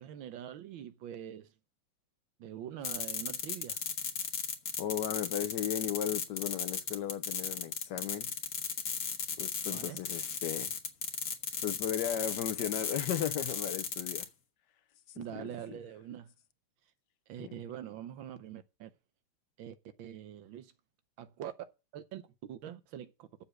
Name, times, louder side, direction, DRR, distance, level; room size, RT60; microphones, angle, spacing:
voice 1, 0.0-1.5 2.4-3.8 9.7-10.0 15.1-16.3 17.3-18.9 19.6-20.7 21.2-21.5 21.9-23.3, right 10 dB, 70° right, 1.5 m, -44 dB
sound 1, 2.8-14.3, left 6 dB, 50° left, 1.6 m, -36 dB
voice 2, 4.8-8.3 9.4-10.7 11.6-14.3 15.7-15.8, left 10 dB, 70° left, 1.1 m, -35 dB
7.1 x 7.0 x 7.9 m
omnidirectional pair, 2.3 m